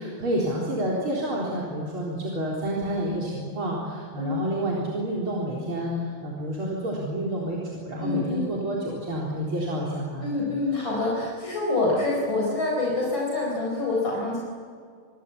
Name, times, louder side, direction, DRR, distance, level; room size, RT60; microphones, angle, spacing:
voice 1, 0.0-10.3, right 1 dB, 75° right, -4 dB, 4.9 m, -29 dB
voice 2, 8.0-8.5 10.2-14.4, left 2 dB, 65° left, -2 dB, 5.2 m, -26 dB
28.5 x 22.0 x 8.5 m, 2.1 s
omnidirectional pair, 2.3 m